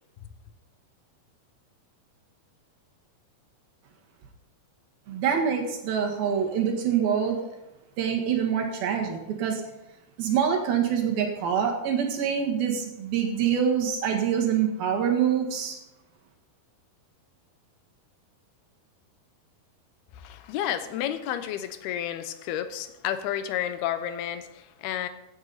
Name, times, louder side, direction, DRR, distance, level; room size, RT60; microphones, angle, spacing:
voice 1, 5.1-7.5 8.0-9.6 10.2-15.8, right 8 dB, 70° right, 1 dB, 3.6 m, -25 dB
voice 2, 20.2-25.1, left 11 dB, 85° left, 11 dB, 2.8 m, -31 dB
16.0 x 9.5 x 4.1 m, 0.93 s
omnidirectional pair, 4.4 m